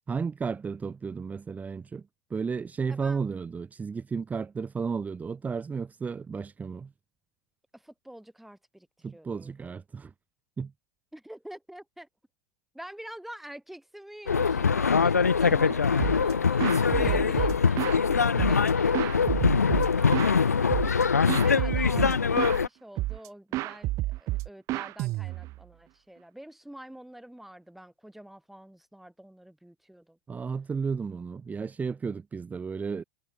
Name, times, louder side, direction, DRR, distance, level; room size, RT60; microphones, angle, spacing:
voice 1, 0.1-6.9 9.0-10.1 10.6-10.7 15.5-15.6 16.9-17.1 30.3-33.0, right 5 dB, 20° right, 3.9 m, -33 dB
voice 2, 2.9-3.2 7.7-9.7 11.1-12.1 12.7-30.2, right 1 dB, ahead, 5.6 m, -46 dB
sound 1, 14.3-22.7, left 5 dB, 85° left, 0.5 m, -23 dB
sound 2, 16.0-16.3 16.6-18.0 18.4-20.4 20.7-21.0 21.3-22.6 23.0-23.3 23.5-25.6, right 18 dB, 40° right, 0.5 m, -30 dB
figure-of-eight pair, 85°, 8 cm